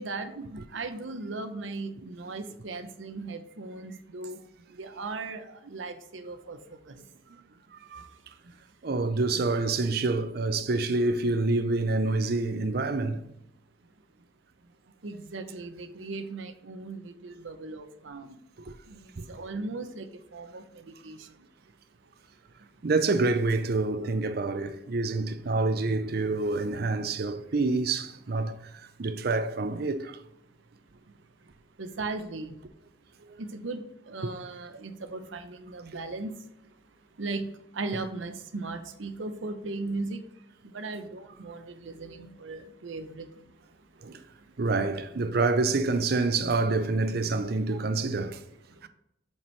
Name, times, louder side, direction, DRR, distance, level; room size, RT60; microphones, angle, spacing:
voice 1, 0.0-4.4 4.7-6.9 15.0-18.4 18.9-20.1 20.3-21.3 31.8-32.6 33.4-36.3 37.2-37.4 37.7-40.2 40.7-43.3 47.7-47.8, right 3 dB, 85° right, 0.8 m, -37 dB
voice 2, 7.7-8.1 8.8-13.2 18.7-18.8 19.2-19.4 22.8-28.6 29.0-30.2 34.2-34.3 42.2-42.3 44.0-44.2 44.6-48.4 48.8-48.9, right 3 dB, 55° right, 0.5 m, -27 dB
7.2 x 4.5 x 3.2 m
head